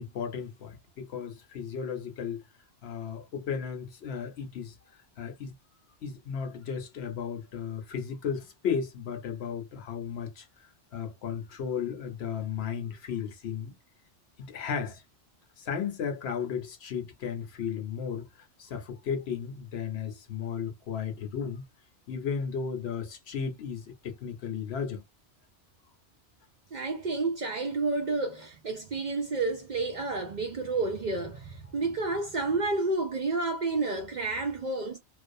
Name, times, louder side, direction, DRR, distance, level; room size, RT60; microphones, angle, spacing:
voice 1, 0.0-2.4 2.8-4.7 5.2-5.5 6.0-10.5 10.9-13.8 14.4-15.0 15.6-18.3 18.6-21.7 22.1-25.0, left 7 dB, 70° left, 0.9 m, -34 dB
voice 2, 26.7-35.0, right 3 dB, 55° right, 0.5 m, -30 dB
2.5 x 2.0 x 2.6 m
omnidirectional pair, 1.2 m